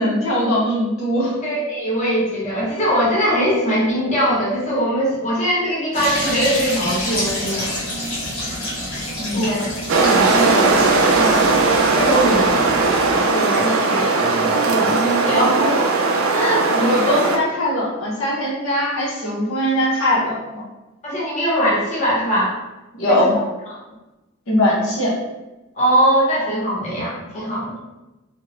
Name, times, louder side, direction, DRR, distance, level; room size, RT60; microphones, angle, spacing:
voice 1, 0.0-1.4 9.1-9.6 16.7-20.6 22.9-23.3 24.5-25.1, left 1 dB, 70° left, -5 dB, 0.8 m, -20 dB
voice 2, 1.4-7.8 9.3-11.4 11.7-12.7 13.1-15.9 16.2-16.7 21.0-22.5 23.1-23.4 25.8-27.7, equal, 35° left, -6 dB, 0.8 m, -21 dB
sound 1, 5.9-13.2, left 1 dB, 85° left, 1.2 m, -28 dB
sound 2, 9.9-17.4, right 3 dB, 70° right, 0.4 m, -18 dB
2.8 x 2.2 x 3.0 m, 1.1 s
head